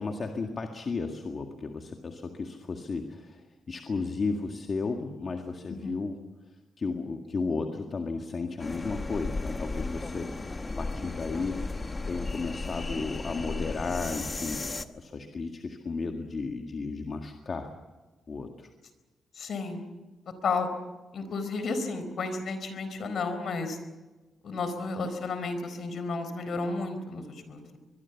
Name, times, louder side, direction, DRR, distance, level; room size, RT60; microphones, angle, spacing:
voice 1, 0.0-6.2 6.8-11.6 12.1-17.7 18.3-18.7, left 4 dB, 40° left, 3 dB, 1.9 m, -34 dB
sound 1, 8.6-14.9, left 3 dB, 20° left, 1.1 m, -35 dB
voice 2, 19.4-19.9 20.4-20.7 21.1-23.8 24.4-27.8, left 3 dB, 60° left, 9 dB, 4.3 m, -32 dB
23.0 x 23.0 x 7.2 m, 1.2 s
cardioid pair, 130°, 0 cm